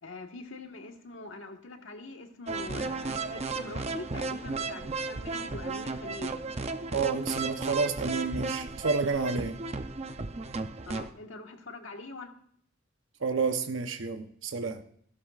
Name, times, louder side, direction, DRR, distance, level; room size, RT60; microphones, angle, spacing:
voice 1, 0.0-6.4 10.9-12.3, left 3 dB, 80° left, 1.6 m, -43 dB
sound 1, 2.5-11.1, right 3 dB, 35° right, 0.6 m, -34 dB
voice 2, 6.9-9.6 13.2-14.8, right 4 dB, 80° right, 0.9 m, -30 dB
15.0 x 12.0 x 2.5 m
head